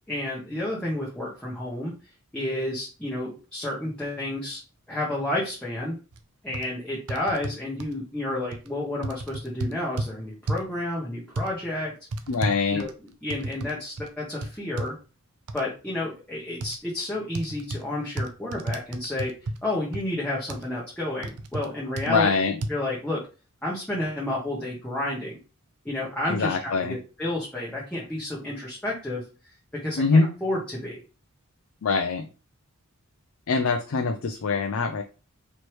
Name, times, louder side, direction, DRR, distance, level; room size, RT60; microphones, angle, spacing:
voice 1, 0.1-1.9 2.3-4.6 4.9-6.0 6.4-11.9 12.7-12.9 13.2-15.0 15.5-19.3 19.6-23.2 23.6-25.4 25.8-29.2 29.8-31.0, left 1 dB, 5° left, -5 dB, 0.9 m, -30 dB
sound 1, 6.1-6.2 6.5-6.7 7.1-7.9 8.5-8.7 9.0-10.1 10.5-10.7 11.4-11.5 12.1-13.7 14.0-14.1 14.4-14.9 15.5-15.6 16.6-16.8 17.3-17.8 18.2-19.6 19.9-20.0 20.5-20.7 21.2-21.7 22.0-22.1 22.6-22.7, right 2 dB, 90° right, 0.6 m, -31 dB
voice 2, 12.3-12.9 22.1-22.5 26.3-27.0 30.0-30.3 31.8-32.3 33.5-35.0, left 4 dB, 65° left, 5 dB, 0.4 m, -23 dB
4.5 x 3.1 x 3.0 m, 0.33 s
head